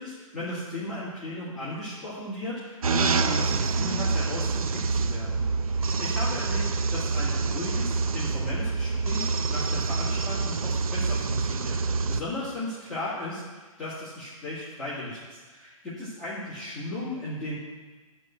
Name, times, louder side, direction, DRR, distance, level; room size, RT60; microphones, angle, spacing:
voice 1, 0.0-17.5, left 1 dB, ahead, -16 dB, 1.9 m, -36 dB
sound 1, 2.8-12.2, right 4 dB, 80° right, 0.7 m, -26 dB
10.5 x 4.5 x 7.8 m, 1.3 s
hypercardioid pair, 175°, 18 cm